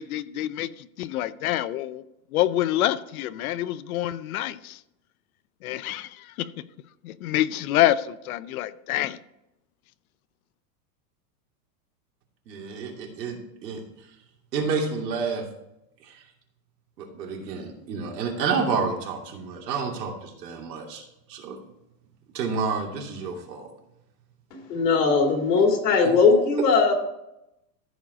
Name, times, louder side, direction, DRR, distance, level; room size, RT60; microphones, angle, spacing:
voice 1, 0.0-2.0 2.3-4.8 5.6-6.5 7.0-9.2, left 13 dB, 60° left, 0.7 m, -27 dB
voice 2, 12.5-13.8 14.5-15.5 16.0-16.2 17.0-21.0 21.3-21.6 22.3-23.7 25.5-25.6, right 5 dB, 85° right, 2.9 m, -29 dB
voice 3, 24.7-26.9, left 4 dB, 80° left, 3.1 m, -19 dB
14.5 x 5.1 x 5.0 m
supercardioid pair, 165°, 48 cm